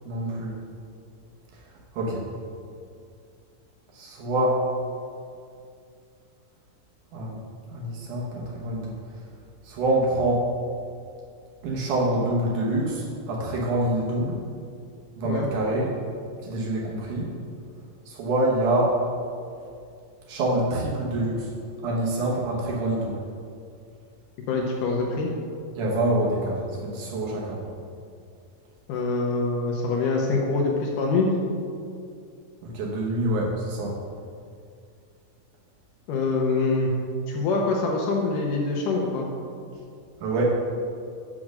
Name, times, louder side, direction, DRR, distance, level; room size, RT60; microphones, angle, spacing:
voice 1, 0.1-0.5 2.0-2.3 3.9-4.6 7.1-7.4 7.7-8.9 9.6-10.5 11.6-14.4 15.2-15.9 16.4-17.3 18.1-18.9 20.3-21.5 21.8-23.1 25.8-27.6 32.6-34.0 40.2-40.6, right 1 dB, 65° right, -3 dB, 2.3 m, -26 dB
voice 2, 24.5-25.3 28.9-31.4 36.1-36.9 37.3-39.3, left 3 dB, 75° left, 0 dB, 2.1 m, -24 dB
6.4 x 6.0 x 6.1 m, 2.3 s
omnidirectional pair, 4.3 m